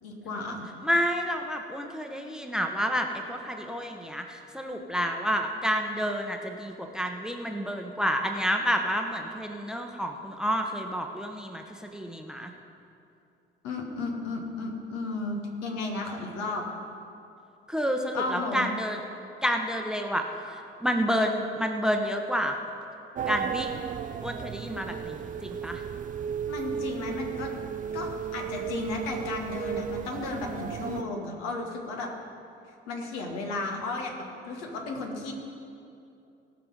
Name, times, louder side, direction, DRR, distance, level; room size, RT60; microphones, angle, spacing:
voice 1, 0.0-0.7 13.6-16.6 18.1-18.7 26.5-27.5 27.9-32.1 32.9-34.1 34.5-35.3, left 3 dB, 65° left, 1 dB, 1.6 m, -34 dB
voice 2, 0.8-12.5 17.7-19.0 19.4-20.2 20.8-22.6 23.3-23.8 24.2-25.8, equal, ahead, 4 dB, 1.0 m, -29 dB
sound 1, 23.1-31.0, right 8 dB, 30° right, 0.4 m, -35 dB
18.0 x 6.1 x 5.4 m, 2.7 s
figure-of-eight pair, 45°, 29 cm